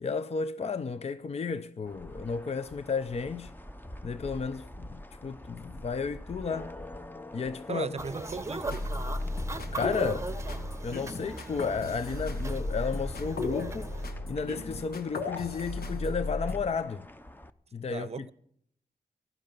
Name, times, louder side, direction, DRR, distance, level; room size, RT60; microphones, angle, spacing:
voice 1, 0.0-3.5 4.0-6.7 7.3-8.0 9.7-10.3 10.8-14.0 14.3-17.0 17.7-18.3, left 5 dB, 40° left, 0.5 m, -33 dB
sound 1, 1.9-17.5, left 1 dB, 10° left, 0.8 m, -46 dB
voice 2, 7.7-8.8 17.9-18.3, right 5 dB, 45° right, 0.7 m, -37 dB
sound 2, 8.0-14.1, right 2 dB, 20° right, 0.9 m, -39 dB
sound 3, 8.7-16.6, left 2 dB, 80° left, 1.4 m, -35 dB
15.0 x 11.0 x 5.2 m
cardioid pair, 50°, 16 cm